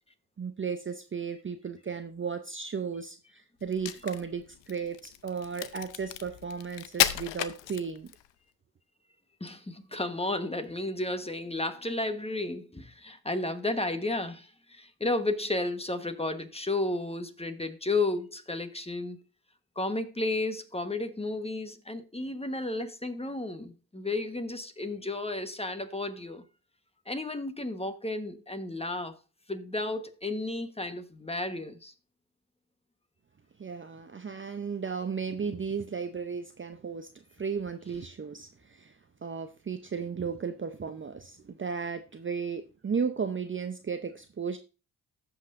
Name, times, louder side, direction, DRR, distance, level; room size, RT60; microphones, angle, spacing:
voice 1, 0.4-8.1 33.6-37.1 37.4-38.9 39.2-44.6, right 6 dB, 30° right, 0.7 m, -35 dB
Crack, 3.6-8.3, left 13 dB, 80° left, 0.7 m, -32 dB
voice 2, 9.4-19.2 19.8-26.4 27.1-29.1 29.5-31.9, left 2 dB, 15° left, 1.2 m, -33 dB
15.0 x 5.7 x 2.6 m
supercardioid pair, 50°, 44 cm